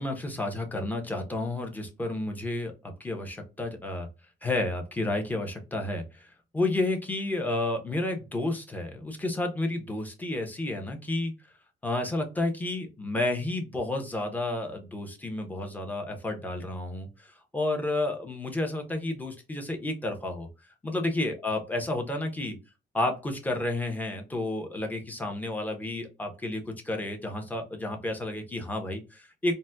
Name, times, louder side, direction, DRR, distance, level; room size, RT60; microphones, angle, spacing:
voice 1, 0.0-4.1 4.4-6.3 6.5-11.3 11.8-20.5 20.8-22.6 22.9-29.5, left 2 dB, 10° left, 3 dB, 0.8 m, -31 dB
4.0 x 2.2 x 2.2 m, 0.28 s
cardioid pair, 110°, 17 cm